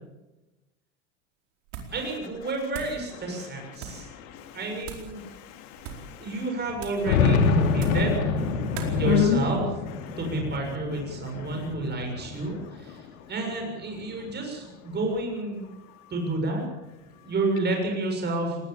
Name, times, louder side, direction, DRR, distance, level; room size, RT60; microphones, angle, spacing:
sound 1, 1.7-2.1 2.3-3.0 3.7-4.1 4.8-5.2 5.7-6.1 6.8-7.1 7.7-8.1 8.7-9.0, right 7 dB, 60° right, 4.7 m, -40 dB
voice 1, 1.9-4.1 4.5-5.2 6.2-8.4 8.9-9.6 10.2-13.0 13.3-15.6 16.1-16.6 17.2-18.6, right 2 dB, 25° right, 2 dB, 6.9 m, -30 dB
sound 2, 3.1-3.2 3.4-3.5 4.4-4.5 5.0-5.1 6.7-13.1 13.5-14.5, left 4 dB, 85° left, 2.8 m, -27 dB
voice 2, 3.9-4.6 5.2-6.3 8.6-9.4 10.1-10.2, left 10 dB, 70° left, 4 dB, 3.3 m, -30 dB
19.5 x 19.0 x 7.2 m, 1.0 s
supercardioid pair, 120°, 39 cm